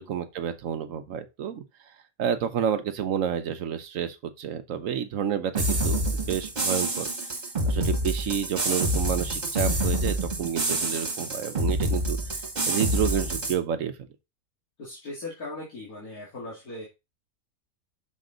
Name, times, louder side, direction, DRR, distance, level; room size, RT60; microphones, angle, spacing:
voice 1, 0.0-1.6 2.2-7.1 7.7-12.2 12.7-13.9, right 8 dB, 65° right, 1.2 m, -29 dB
sound 1, 5.5-13.5, right 1 dB, 30° right, 1.6 m, -27 dB
voice 2, 14.8-16.9, left 2 dB, 75° left, 2.8 m, -39 dB
6.5 x 5.1 x 3.8 m
omnidirectional pair, 1.5 m